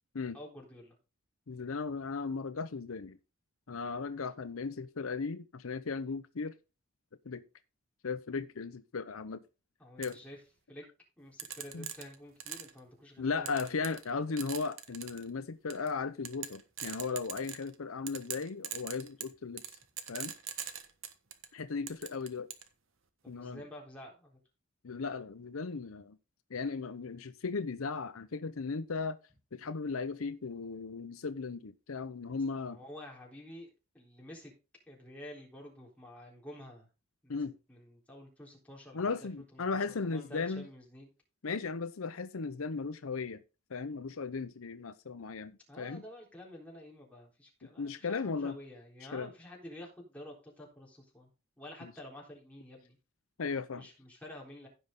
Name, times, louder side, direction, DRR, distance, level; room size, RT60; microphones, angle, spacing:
voice 1, 0.3-1.0 9.8-10.4 10.7-10.9 11.2-13.5 23.2-24.4 32.6-33.7 33.9-34.5 34.9-36.9 37.2-37.3 37.7-41.1 45.7-51.3 51.6-53.0 53.7-54.7, left 1 dB, 5° left, 3.8 m, -50 dB
voice 2, 1.5-3.2 3.7-6.5 7.2-7.4 8.0-9.4 10.0-10.2 11.7-11.9 13.2-19.6 20.1-20.3 21.5-22.5 23.3-23.6 24.8-26.2 26.5-29.2 29.5-32.8 37.3-37.6 38.9-40.7 41.4-43.4 43.7-46.0 47.8-48.6 49.1-49.3 51.8-51.9 53.4-53.8, left 4 dB, 75° left, 0.7 m, -36 dB
sound 1, 10.0-10.1 11.4-12.8 13.5-14.1 14.4-15.2 15.7-15.9 16.2-17.7 18.1-21.5 21.9-22.7, right 9 dB, 65° right, 1.3 m, -41 dB
16.0 x 5.6 x 3.7 m
head